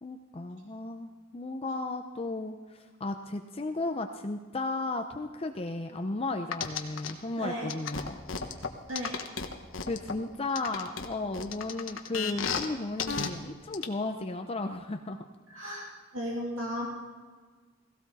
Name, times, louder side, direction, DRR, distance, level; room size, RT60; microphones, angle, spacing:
voice 1, 0.0-8.2 9.9-15.2, left 2 dB, 30° left, 5 dB, 0.7 m, -34 dB
sound 1, 6.5-7.1 7.7-10.1 10.6-12.7 13.0-13.3 13.7-13.8, left 6 dB, 75° left, 1.2 m, -32 dB
voice 2, 7.4-7.7 8.9-9.1 15.5-15.9 16.1-16.9, equal, 75° right, -3 dB, 3.0 m, -34 dB
17.0 x 16.5 x 4.2 m, 1.4 s
head